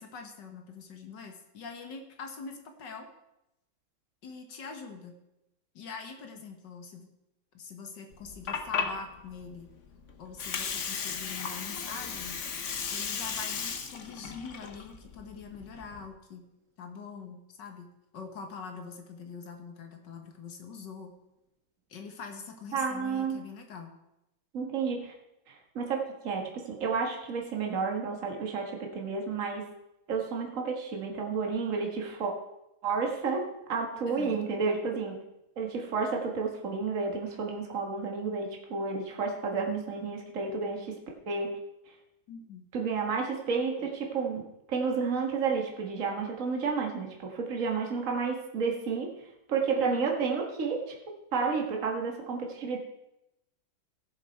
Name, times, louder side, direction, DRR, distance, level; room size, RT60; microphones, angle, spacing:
voice 1, 0.0-3.1 4.2-5.2 5.7-7.1 7.5-9.7 10.2-12.4 12.9-16.5 16.8-21.2 21.9-24.0 34.1-34.4 42.3-42.7 49.8-50.1, left 5 dB, 65° left, 5 dB, 2.0 m, -43 dB
Water, 8.1-16.1, left 6 dB, 50° left, 1.1 m, -36 dB
voice 2, 22.7-23.4 24.5-25.1 25.5-29.7 30.1-32.3 32.8-35.2 35.6-41.0 41.3-41.5 42.7-49.1 49.5-50.9 51.3-52.8, right 5 dB, 45° right, 1 dB, 1.9 m, -31 dB
15.5 x 7.2 x 4.5 m, 0.89 s
omnidirectional pair, 2.1 m